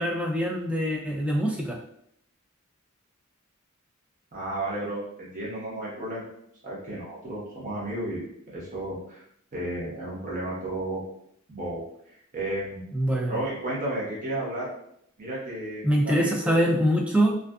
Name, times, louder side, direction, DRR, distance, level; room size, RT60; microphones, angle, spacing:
voice 1, 0.0-1.8 12.9-13.4 15.8-17.4, equal, 5° right, 0 dB, 0.3 m, -24 dB
voice 2, 4.3-6.3 6.6-8.2 8.5-9.2 9.5-11.0 11.5-11.8 12.1-12.9 13.3-14.7 15.2-16.6, right 1 dB, 40° right, -6 dB, 1.0 m, -33 dB
2.5 x 2.3 x 2.2 m, 0.71 s
head